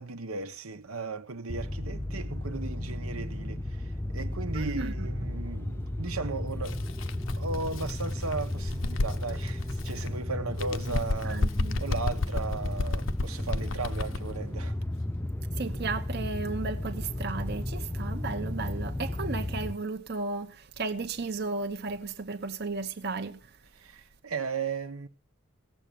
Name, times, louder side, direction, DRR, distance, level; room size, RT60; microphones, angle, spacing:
voice 1, 0.0-6.9 7.4-11.5 11.8-14.7 23.7-25.1, right 4 dB, 85° right, 1.3 m, -36 dB
sound 1, 1.5-19.7, left 1 dB, 10° left, 0.6 m, -34 dB
voice 2, 4.5-5.1 10.6-11.0 11.2-11.8 15.6-23.6, right 3 dB, 50° right, 0.9 m, -35 dB
Bird, 6.6-10.1 10.5-14.4, left 2 dB, 60° left, 0.7 m, -32 dB
17.0 x 7.6 x 6.9 m
head